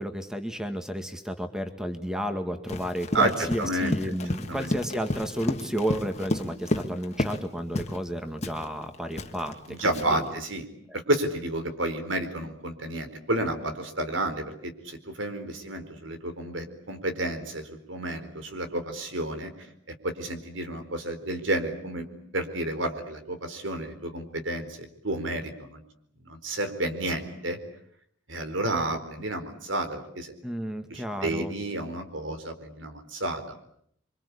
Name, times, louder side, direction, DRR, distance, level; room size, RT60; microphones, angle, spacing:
voice 1, 0.0-10.3 30.4-31.5, equal, 5° right, 6 dB, 2.0 m, -32 dB
Run, 2.7-7.5 7.8-8.0 8.4-10.3, left 1 dB, 35° left, 1.7 m, -32 dB
voice 2, 3.1-4.0 4.5-4.8 9.7-10.7 10.9-22.1 22.3-25.8 26.2-27.6 28.3-30.3 30.9-33.4, right 1 dB, 80° right, 8 dB, 4.3 m, -31 dB
28.0 x 24.5 x 8.5 m, 0.70 s
head